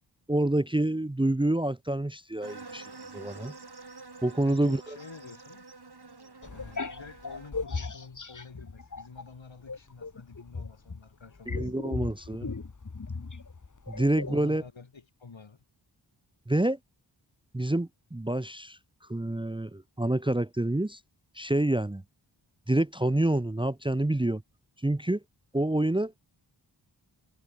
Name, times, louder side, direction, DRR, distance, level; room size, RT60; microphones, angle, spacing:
voice 1, 0.3-2.8 3.1-3.5 4.2-4.8 11.5-12.5 13.9-14.6 16.5-16.8 17.5-18.8 19.1-21.0 21.3-22.0 22.7-24.4 24.8-25.2 25.5-26.1, right 1 dB, 10° right, 0.8 m, -27 dB
sound 1, 2.4-7.5, right 3 dB, 55° right, 7.2 m, -47 dB
voice 2, 4.5-5.6 6.5-11.7 14.3-15.6, left 4 dB, 75° left, 7.9 m, -48 dB
sound 2, 6.4-9.3 9.7-14.4, left 4 dB, 40° left, 1.9 m, -37 dB
cardioid pair, 45°, 46 cm